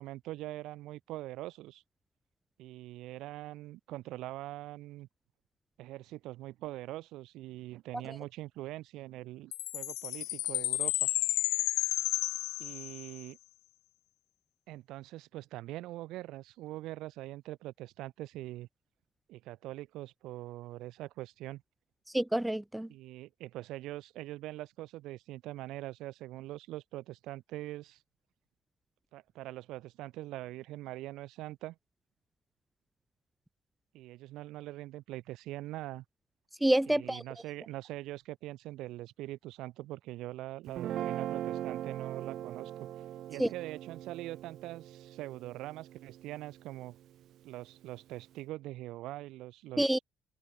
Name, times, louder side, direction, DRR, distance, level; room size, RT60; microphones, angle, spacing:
voice 1, 0.0-1.8 2.6-5.1 5.8-11.1 12.6-13.4 14.7-18.7 19.3-21.6 22.9-28.0 29.1-31.8 33.9-36.0 36.9-42.9 43.3-47.0 47.4-50.0, right 16 dB, 65° right, 6.2 m, -43 dB
Chime, 9.5-13.2, left 19 dB, 80° left, 0.3 m, -32 dB
voice 2, 22.1-22.9 36.6-37.2 43.4-43.5 49.8-50.0, right 1 dB, 5° right, 0.4 m, -27 dB
Guitar, 40.7-47.0, right 12 dB, 50° right, 1.8 m, -40 dB
cardioid pair, 175°, 0 cm